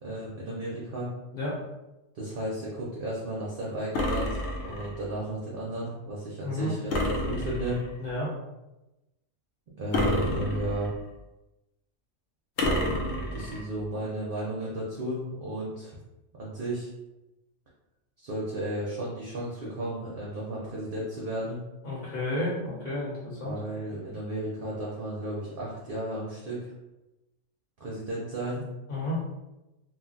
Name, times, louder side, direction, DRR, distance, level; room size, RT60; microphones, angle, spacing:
voice 1, 0.0-1.1 2.1-6.9 7.3-7.8 9.8-10.9 13.3-15.9 16.4-16.9 18.2-21.6 23.4-26.7 27.8-28.6, right 1 dB, 55° right, -5 dB, 0.7 m, -34 dB
sound 1, 3.9-5.0 6.9-8.0 9.9-11.1 12.6-13.6, left 1 dB, 65° left, 0.8 m, -29 dB
voice 2, 6.4-6.7 8.0-8.3 21.8-23.6 28.9-29.2, left 1 dB, 40° left, -7 dB, 1.0 m, -31 dB
2.5 x 2.2 x 3.8 m, 1.0 s
omnidirectional pair, 1.3 m